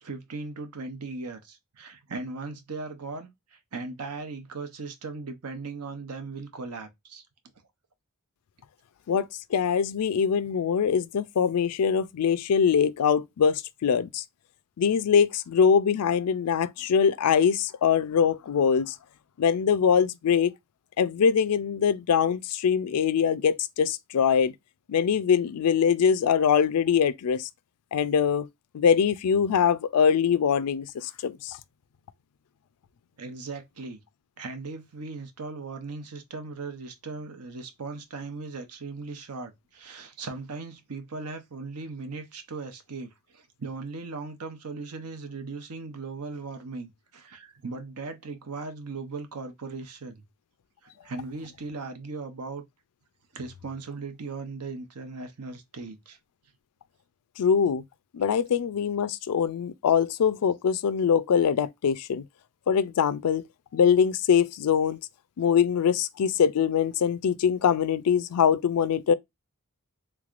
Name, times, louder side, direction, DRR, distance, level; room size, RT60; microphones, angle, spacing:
voice 1, 0.0-7.2 33.2-34.0 34.4-50.2 50.8-52.7 53.3-56.2, right 3 dB, 85° right, 0.8 m, -38 dB
voice 2, 9.1-14.2 14.8-18.9 19.4-20.5 21.0-24.5 24.9-27.5 27.9-28.5 28.7-31.6 57.4-57.8 58.1-62.2 62.7-63.4 63.7-65.0 65.4-69.1, left 7 dB, 85° left, 0.4 m, -23 dB
3.5 x 3.2 x 2.4 m
head